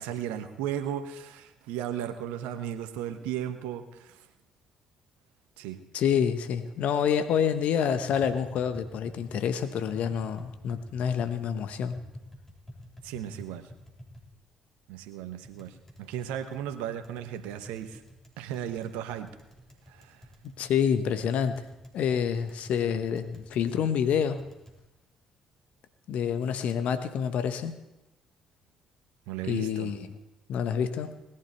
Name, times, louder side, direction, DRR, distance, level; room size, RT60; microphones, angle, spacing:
voice 1, 0.0-4.2 5.6-5.8 13.0-13.7 14.9-18.0 18.4-19.3 19.9-20.2 29.3-29.9, right 10 dB, 75° right, 9 dB, 1.0 m, -35 dB
voice 2, 5.9-11.9 20.6-21.6 21.9-24.5 26.1-27.8 29.5-30.2 30.5-31.1, left 8 dB, 60° left, 11 dB, 0.9 m, -27 dB
Tap, 7.9-24.8, equal, 15° left, 3.7 m, -50 dB
19.0 x 11.0 x 4.4 m, 1.0 s
hypercardioid pair, 45°, 2 cm